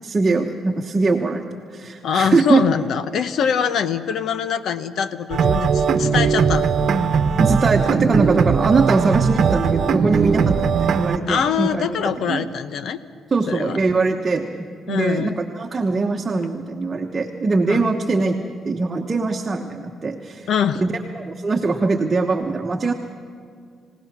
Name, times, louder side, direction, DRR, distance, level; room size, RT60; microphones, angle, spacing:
voice 1, 0.0-2.6 7.4-12.5 13.3-14.5 14.9-20.5 20.8-22.9, right 3 dB, 30° right, 2 dB, 1.2 m, -22 dB
voice 2, 2.0-6.7 11.3-13.0 13.5-13.8 14.9-15.4 17.7-17.8 20.5-20.8, left 7 dB, 70° left, 12 dB, 1.0 m, -23 dB
sound 1, 5.3-11.2, right 6 dB, 60° right, 1.1 m, -19 dB
28.5 x 17.0 x 6.1 m, 2.1 s
cardioid pair, 90°, 0 cm